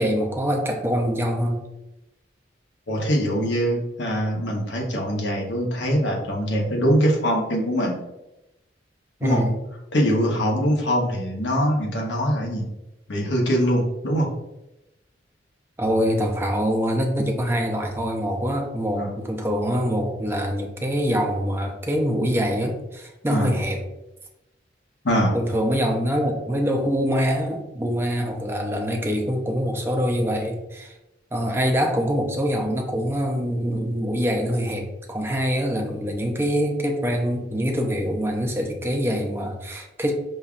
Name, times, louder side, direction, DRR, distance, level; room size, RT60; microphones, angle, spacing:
voice 1, 0.0-1.6 9.2-9.5 15.8-23.8 25.3-30.9 31.3-40.1, equal, 15° right, 2 dB, 0.4 m, -24 dB
voice 2, 2.9-8.0 9.2-9.4 9.9-12.6 13.1-14.3 19.0-19.1 23.3-23.5 25.0-25.3, equal, 75° left, 0 dB, 0.9 m, -23 dB
5.3 x 2.3 x 2.4 m, 0.92 s
head